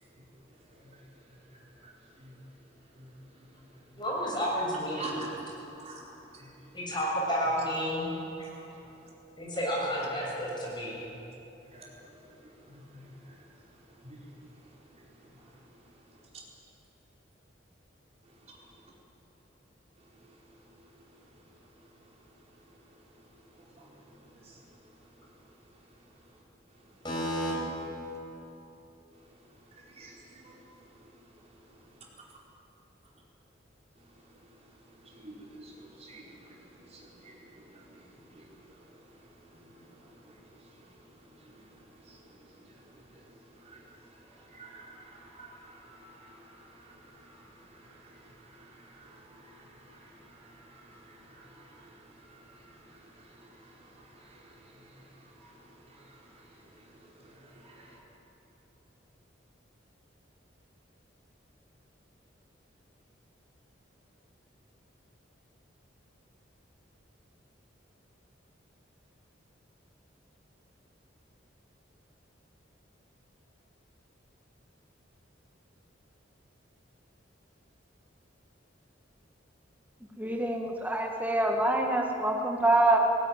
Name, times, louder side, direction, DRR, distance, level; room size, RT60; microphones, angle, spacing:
voice 1, 1.3-2.4 3.0-3.5 5.0-5.5 5.7-6.1 6.3-6.7 8.4-8.9 11.6-13.5 13.7-14.4 14.9-15.6 20.2-20.3 20.8-20.9 21.8-21.9 23.5-24.6 29.7-30.6 31.0-31.1 31.5-31.8 34.0-34.6 34.9-58.0, right 2 dB, 35° right, -3 dB, 4.4 m, -52 dB
voice 2, 4.0-5.3 6.7-8.1 9.4-11.0 27.0-27.5, equal, 25° left, -4 dB, 7.0 m, -31 dB
voice 3, 80.2-83.0, right 2 dB, 10° right, 1 dB, 1.5 m, -26 dB
18.5 x 17.5 x 9.9 m, 3.0 s
head